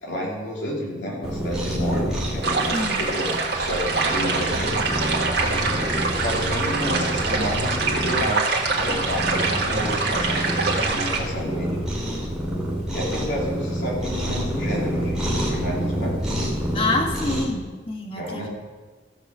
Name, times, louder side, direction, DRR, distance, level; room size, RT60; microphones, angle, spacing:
voice 1, 0.0-4.7 6.2-11.7 12.9-16.2 18.2-18.5, equal, 75° left, -4 dB, 3.1 m, -30 dB
Cat, 1.2-17.4, equal, 5° right, 2.6 m, -28 dB
sound 1, 2.4-11.2, right 4 dB, 60° right, 1.8 m, -25 dB
voice 2, 16.7-18.5, left 2 dB, 30° left, 2 dB, 1.4 m, -26 dB
15.5 x 6.1 x 6.7 m, 1.4 s
head